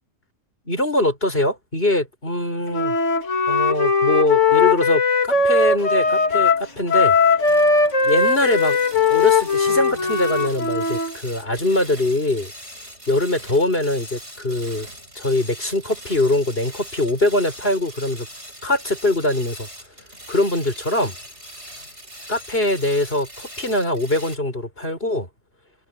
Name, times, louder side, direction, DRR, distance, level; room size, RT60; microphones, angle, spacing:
voice 1, 0.6-3.0 3.5-7.2 8.0-8.8 9.1-12.5 13.1-14.9 15.1-18.3 18.6-19.7 20.3-21.2 22.3-25.3, left 1 dB, 50° left, 6.6 m, -22 dB
Wind instrument woodwind instrument, 2.7-11.1, left 4 dB, 75° left, 2.4 m, -19 dB
sound 1, 5.3-11.0, right 1 dB, 40° right, 7.3 m, -45 dB
sound 2, 7.4-24.4, equal, 65° right, 7.7 m, -41 dB
omnidirectional pair, 1.3 m